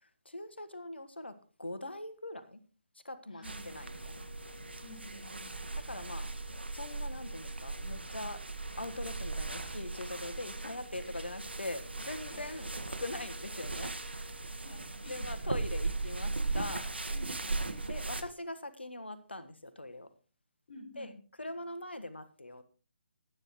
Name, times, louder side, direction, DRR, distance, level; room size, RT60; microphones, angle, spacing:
voice 1, 0.2-2.6 3.0-4.2 5.9-6.3 6.7-8.4 8.8-12.7 13.0-14.3 15.0-16.9 17.9-20.1 21.0-21.1 21.4-22.6, left 1 dB, 80° left, 10 dB, 1.5 m, -42 dB
voice 2, 3.3-3.8 4.8-5.5 12.3-12.5 14.5-15.4 17.1-17.7 20.7-21.1, left 1 dB, 50° left, 3 dB, 4.7 m, -51 dB
sound 1, 3.4-18.2, right 3 dB, 75° right, 1.8 m, -38 dB
20.5 x 9.6 x 3.1 m, 0.36 s
figure-of-eight pair, 145°, 6 cm